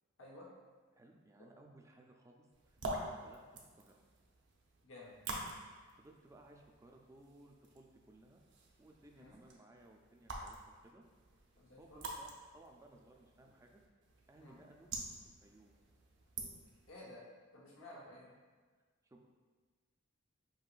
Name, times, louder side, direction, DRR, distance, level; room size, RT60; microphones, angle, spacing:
voice 1, 0.9-4.0 6.0-8.4 8.8-11.0 11.8-13.8 14.3-14.9 15.4-15.7 19.0-19.3, right 2 dB, 15° right, 2 dB, 0.3 m, -61 dB
sound 1, 2.5-16.9, right 2 dB, 60° right, 0.6 m, -48 dB
voice 2, 4.8-5.1 9.1-9.3 11.6-12.0 14.4-14.6 16.9-17.2 17.5-18.4, left 1 dB, 75° left, -4 dB, 1.0 m, -54 dB
5.4 x 2.9 x 2.4 m, 1.5 s
head